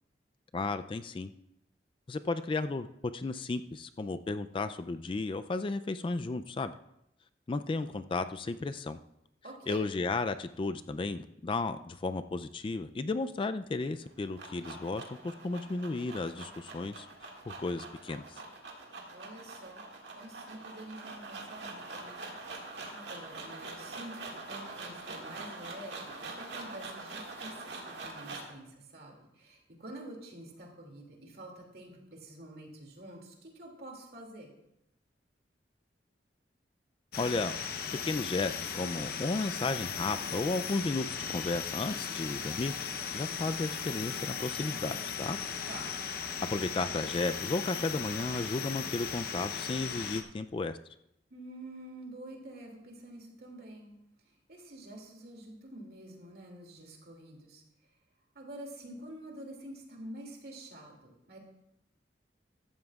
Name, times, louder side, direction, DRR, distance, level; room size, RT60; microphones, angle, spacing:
voice 1, 0.5-1.3 2.1-2.9 3.1-6.7 7.5-9.0 9.7-17.1 17.5-18.4 37.2-37.5 38.0-42.7 43.1-45.4 46.5-50.8, left 3 dB, 30° left, 11 dB, 0.3 m, -34 dB
voice 2, 9.4-9.9 19.1-19.8 20.1-34.5 45.6-45.9 51.3-53.9 54.2-57.6 58.3-61.4, right 1 dB, 60° right, 1 dB, 2.5 m, -48 dB
sound 1, 14.0-28.6, right 3 dB, 85° right, 1.9 m, -44 dB
sound 2, 37.1-50.2, left 6 dB, 55° left, 0.8 m, -37 dB
15.0 x 13.0 x 2.4 m, 0.81 s
head